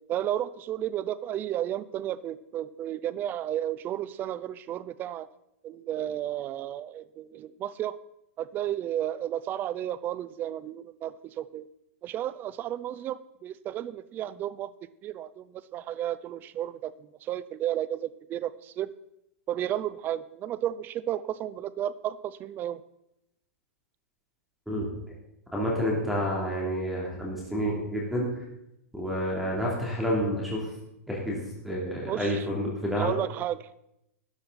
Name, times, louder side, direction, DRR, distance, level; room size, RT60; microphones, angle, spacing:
voice 1, 0.1-5.3 5.6-7.9 8.4-11.7 12.0-14.7 15.0-16.9 17.2-18.9 19.5-22.8 32.0-32.5 33.0-33.8, right 11 dB, 25° right, 17 dB, 0.5 m, -33 dB
voice 2, 25.5-28.3 28.9-30.6 31.1-33.2, equal, ahead, -3 dB, 3.1 m, -29 dB
13.0 x 9.6 x 4.2 m, 0.83 s
hypercardioid pair, 140°, 8 cm